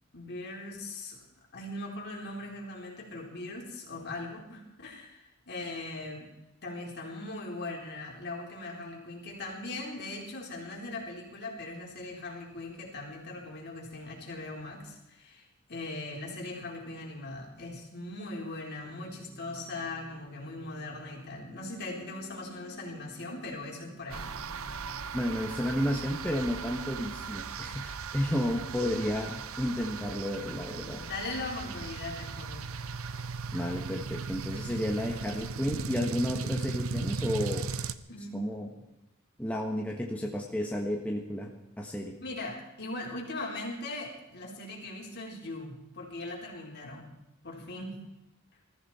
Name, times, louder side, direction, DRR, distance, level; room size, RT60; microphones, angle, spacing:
voice 1, 0.1-1.3 1.5-6.3 6.6-24.3 30.8-32.6 38.1-38.6 39.9-40.0 42.2-47.1 47.4-48.1, left 2 dB, 50° left, -1 dB, 4.2 m, -40 dB
sound 1, 18.8-25.0, right 1 dB, 25° right, 3.3 m, -51 dB
sound 2, 24.1-37.9, right 5 dB, 70° right, 0.8 m, -37 dB
voice 2, 25.1-31.0 33.5-37.7 38.3-38.7 39.4-41.5 41.8-42.1, equal, 5° left, 0 dB, 1.5 m, -32 dB
20.5 x 14.0 x 4.4 m, 0.92 s
head